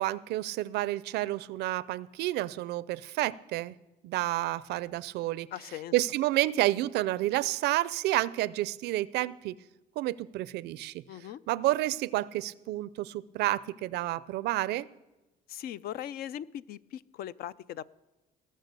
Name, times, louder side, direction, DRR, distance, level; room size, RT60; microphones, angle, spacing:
voice 1, 0.0-3.8 4.0-5.5 5.9-9.5 10.0-11.0 11.5-14.9, right 16 dB, 80° right, 20 dB, 0.4 m, -30 dB
voice 2, 5.5-5.9 11.1-11.4 15.5-17.8, left 11 dB, 65° left, 18 dB, 0.4 m, -39 dB
18.0 x 6.5 x 6.7 m, 1.1 s
cardioid pair, 110°, 17 cm